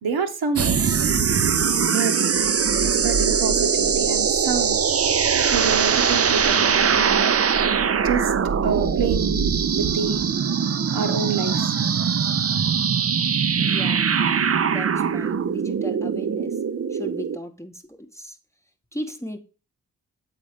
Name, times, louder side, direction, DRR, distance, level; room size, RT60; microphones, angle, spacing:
voice 1, 0.0-0.7 1.5-1.6 1.9-2.2 2.8-4.8 5.5-7.3 8.0-8.3 8.6-9.4 9.8-10.3 10.9-11.7, right 6 dB, 60° right, 1.1 m, -27 dB
sound 1, 0.6-17.4, right 6 dB, 35° right, 0.6 m, -21 dB
voice 2, 13.6-14.2 14.6-16.6 16.9-18.4 18.9-19.4, equal, 5° left, 1.0 m, -36 dB
7.5 x 4.1 x 5.0 m
hypercardioid pair, 40°, 42 cm